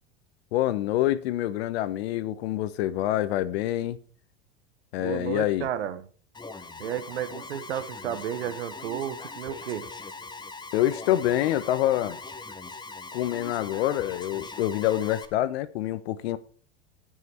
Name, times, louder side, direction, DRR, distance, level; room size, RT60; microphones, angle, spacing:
voice 1, 0.5-4.0 4.9-5.7 10.7-12.2 13.1-16.4, left 13 dB, 75° left, 1.2 m, -26 dB
voice 2, 5.0-6.1 6.8-9.9, right 10 dB, 85° right, 1.3 m, -32 dB
Alarm, 6.3-15.3, left 3 dB, 15° left, 1.3 m, -41 dB
16.5 x 6.3 x 4.5 m
hypercardioid pair, 105°, 32 cm